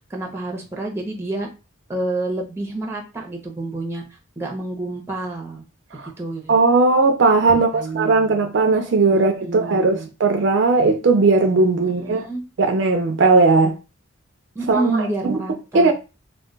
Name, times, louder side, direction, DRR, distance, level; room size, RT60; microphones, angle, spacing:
voice 1, 0.1-1.5 1.9-4.0 4.4-5.6 6.2-6.6 7.5-8.4 9.1-10.1 11.8-12.4 14.5-15.9, right 2 dB, 10° right, 0.6 m, -28 dB
voice 2, 6.5-7.7 7.9-12.3 12.6-13.8 14.7-15.4 15.7-15.9, right 3 dB, 55° right, 0.4 m, -17 dB
2.2 x 2.2 x 3.8 m
head